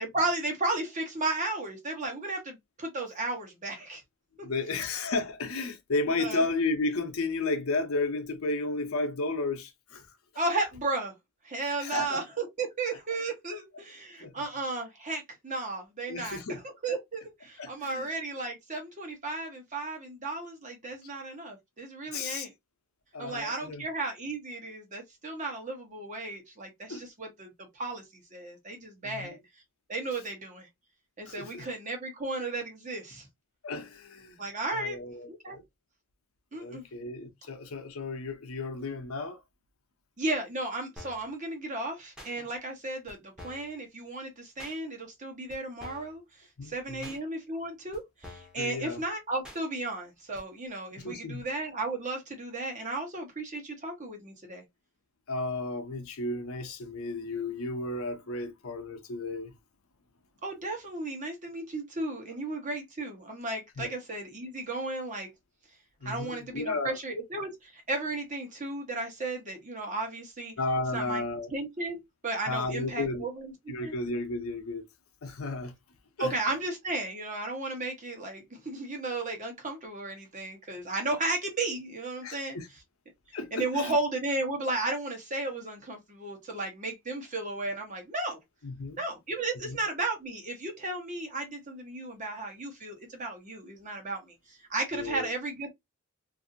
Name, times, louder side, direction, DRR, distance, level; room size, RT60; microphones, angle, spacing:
voice 1, 0.0-4.0 6.2-6.4 10.4-11.1 11.4-22.5 23.2-29.4 29.9-30.7 31.2-33.3 34.4-35.0 35.3-35.6 36.5-36.8 40.2-54.6 60.4-65.3 66.0-70.5 70.9-71.2 71.5-73.9 76.2-82.6 83.5-88.4 89.0-95.7, right 2 dB, 35° right, 1.0 m, -34 dB
voice 2, 4.4-10.1 11.8-12.2 14.2-14.4 16.1-16.6 17.6-18.1 22.1-22.5 23.1-23.8 26.9-27.0 29.0-29.3 31.3-31.7 33.6-34.4 34.7-35.6 36.5-39.4 46.6-47.2 48.6-49.0 50.9-51.4 55.3-59.5 63.8-63.9 66.0-67.0 70.6-71.5 72.5-73.3 73.7-74.9 75.2-75.7 76.2-76.3 82.2-82.7 83.3-83.9 88.6-89.0 89.6-89.8 94.9-95.3, left 3 dB, 80° left, 0.7 m, -33 dB
sound 1, 41.0-41.3 42.2-42.3 43.1-43.2 43.4-43.7 44.6-44.8 45.5-45.6 45.8-46.2 47.0-47.2 47.9-48.0 48.2-48.6 49.4-49.6 50.3-50.4, left 1 dB, 5° right, 0.8 m, -47 dB
2.6 x 2.6 x 2.5 m
head